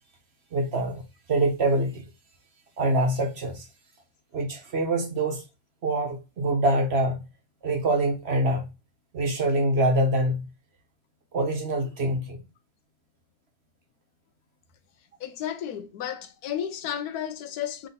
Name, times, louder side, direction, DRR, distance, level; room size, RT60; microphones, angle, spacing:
voice 1, 0.5-1.0 1.3-2.0 2.8-3.7 4.3-5.4 5.8-7.2 7.6-8.7 9.1-10.4 11.3-12.4, right 1 dB, 50° right, 1.0 m, -25 dB
voice 2, 15.2-17.9, left 10 dB, 80° left, 1.1 m, -33 dB
3.6 x 3.2 x 3.9 m
omnidirectional pair, 1.6 m